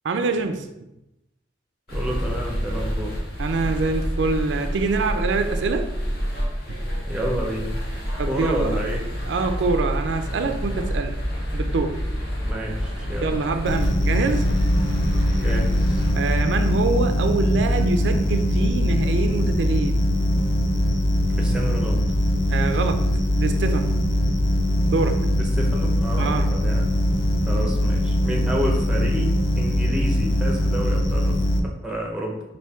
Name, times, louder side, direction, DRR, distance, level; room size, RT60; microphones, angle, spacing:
voice 1, 0.0-0.7 3.4-5.9 8.2-8.8 9.3-11.1 11.5-12.1 13.0-15.2 16.1-20.1 22.5-23.0 23.4-23.9 24.9-25.4 26.2-26.5, right 4 dB, 70° right, 6 dB, 0.4 m, -25 dB
sound 1, 1.9-16.1, equal, 55° left, 1.0 m, -28 dB
voice 2, 1.9-3.2 7.1-7.8 8.3-9.1 12.4-13.3 15.3-16.0 21.3-22.0 25.3-26.8 27.5-31.4 31.8-32.4, equal, 5° right, -1 dB, 0.6 m, -30 dB
sound 2, 13.7-31.6, left 1 dB, 80° left, 0.5 m, -21 dB
4.3 x 2.6 x 3.4 m, 0.91 s
head